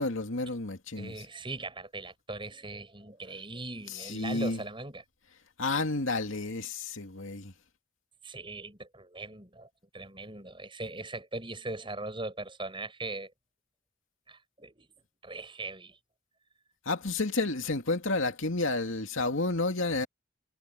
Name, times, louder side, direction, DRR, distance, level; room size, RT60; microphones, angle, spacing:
voice 1, 0.0-1.1 3.9-4.6 5.6-7.5 16.9-20.1, left 3 dB, 70° left, 2.5 m, -30 dB
voice 2, 1.0-5.0 8.2-9.7 9.9-13.3 14.3-16.0, right 2 dB, 25° right, 7.8 m, -40 dB
head